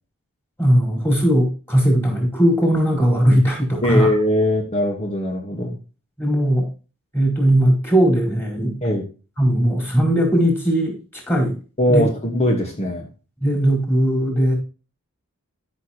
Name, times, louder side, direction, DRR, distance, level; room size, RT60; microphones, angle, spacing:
voice 1, 0.6-4.1 6.2-6.7 7.1-8.8 9.4-11.6 11.9-12.0 13.4-14.5, equal, 10° left, -1 dB, 4.7 m, -18 dB
voice 2, 3.8-5.8 8.8-9.0 11.8-13.1, equal, 30° left, 2 dB, 1.4 m, -20 dB
13.5 x 6.4 x 2.9 m, 0.34 s
head